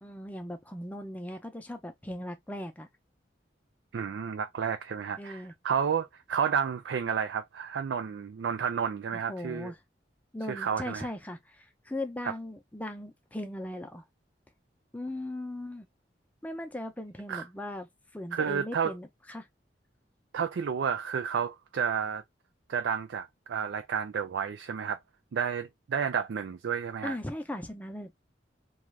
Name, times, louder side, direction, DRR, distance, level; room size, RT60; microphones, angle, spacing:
voice 1, 0.0-2.9 5.2-5.5 9.3-9.7 10.3-14.0 14.9-15.9 16.4-19.5 27.0-28.1, left 1 dB, 10° left, 0.5 m, -38 dB
voice 2, 3.9-9.7 10.5-11.1 17.3-17.4 18.3-18.9 20.3-22.2 22.7-25.0 25.3-27.2, right 7 dB, 85° right, 0.4 m, -31 dB
2.5 x 2.3 x 3.1 m
head